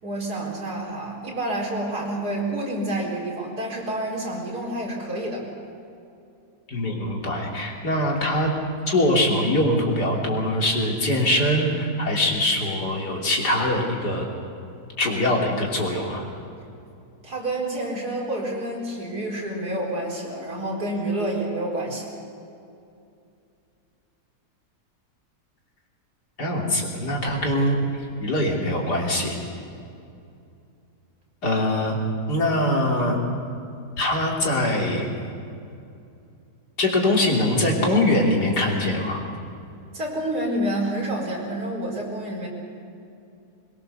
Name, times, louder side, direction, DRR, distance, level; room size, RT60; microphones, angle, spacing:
voice 1, 0.0-5.5 17.2-22.1 39.9-42.5, right 1 dB, 70° right, -2 dB, 4.8 m, -28 dB
voice 2, 6.7-8.5 8.9-14.3 15.0-16.2 26.4-27.8 28.2-29.4 31.4-32.0 32.3-33.2 34.0-35.1 36.8-39.2, left 1 dB, 75° left, -1 dB, 3.8 m, -23 dB
22.0 x 21.5 x 6.9 m, 2.6 s
omnidirectional pair, 1.7 m